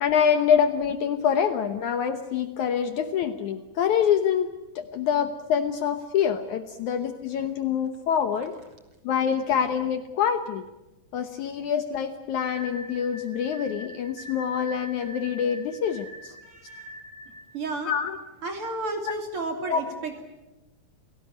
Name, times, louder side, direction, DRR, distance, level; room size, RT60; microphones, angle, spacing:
voice 1, 0.0-8.5 9.0-10.7 11.1-16.3 17.9-18.2 19.1-19.2 19.7-19.8, left 8 dB, 65° left, 9 dB, 2.1 m, -25 dB
sound 1, 12.5-17.4, equal, 85° right, 7.6 m, -43 dB
voice 2, 16.4-16.9 17.5-17.9 18.4-20.2, right 3 dB, 40° right, 4 dB, 3.6 m, -33 dB
28.5 x 18.0 x 9.9 m, 1.0 s
omnidirectional pair, 4.2 m